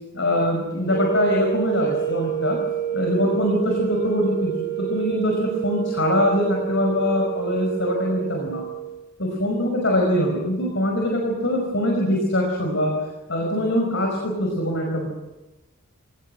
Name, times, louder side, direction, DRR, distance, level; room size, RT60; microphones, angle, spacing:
voice 1, 0.1-2.6 2.9-8.6 9.2-13.0 13.3-15.1, left 1 dB, 60° left, 1 dB, 5.5 m, -23 dB
sound 1, 0.8-9.0, right 13 dB, 15° left, 4.8 m, -29 dB
25.0 x 20.0 x 7.8 m, 1.1 s
head